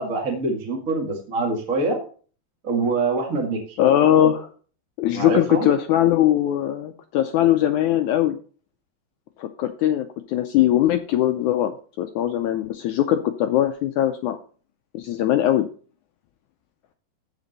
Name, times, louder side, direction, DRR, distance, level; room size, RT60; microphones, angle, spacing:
voice 1, 0.0-2.0 2.6-3.8 5.1-5.7, right 3 dB, 35° right, 0 dB, 1.5 m, -25 dB
voice 2, 3.8-4.5 5.0-8.4 9.4-14.4 14.9-15.7, left 12 dB, 80° left, 8 dB, 1.8 m, -20 dB
14.5 x 5.1 x 4.1 m, 0.41 s
omnidirectional pair, 4.1 m